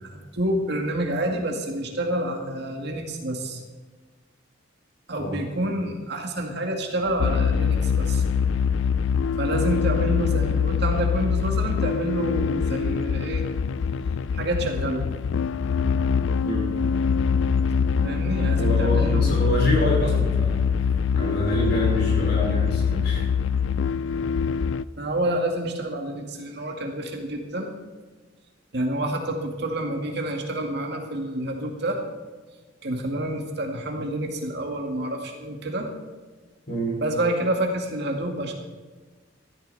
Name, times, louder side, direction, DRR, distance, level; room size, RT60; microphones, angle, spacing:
voice 1, 0.0-3.6 5.1-8.2 9.4-13.4 14.3-15.0 18.0-19.4 24.9-27.7 28.7-32.0 32.8-35.9 37.0-38.5, right 1 dB, 60° right, 2 dB, 2.2 m, -28 dB
sound 1, 7.2-24.8, left 6 dB, 80° left, 0.4 m, -23 dB
voice 2, 18.6-20.7 21.1-23.3 36.7-37.0, equal, 60° left, -2 dB, 5.1 m, -26 dB
15.0 x 13.0 x 4.2 m, 1.3 s
head